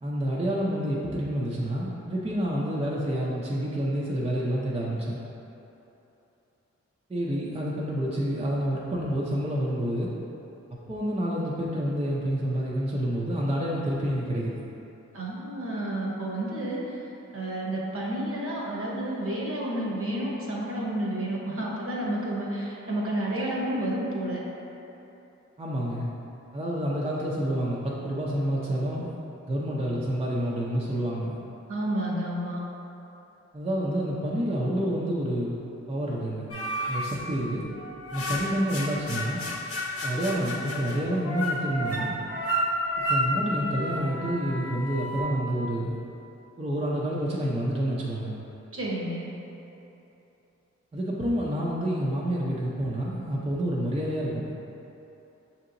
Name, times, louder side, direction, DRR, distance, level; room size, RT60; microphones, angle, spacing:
voice 1, 0.0-5.2 7.1-10.1 10.9-14.5 25.6-26.1 26.5-29.2 29.5-31.4 33.5-35.6 35.9-36.5 36.9-37.6 38.1-39.4 40.0-42.1 43.1-46.0 46.6-48.3 50.9-54.5, equal, 20° right, -5 dB, 0.5 m, -28 dB
voice 2, 15.1-17.0 17.3-24.4 31.7-32.6 48.7-49.3, right 1 dB, 50° right, -4 dB, 0.9 m, -30 dB
sound 1, 36.5-37.2 37.7-45.2, equal, 50° left, 0.8 m, -31 dB
6.3 x 2.8 x 2.6 m, 3.0 s
wide cardioid pair, 75°, 29 cm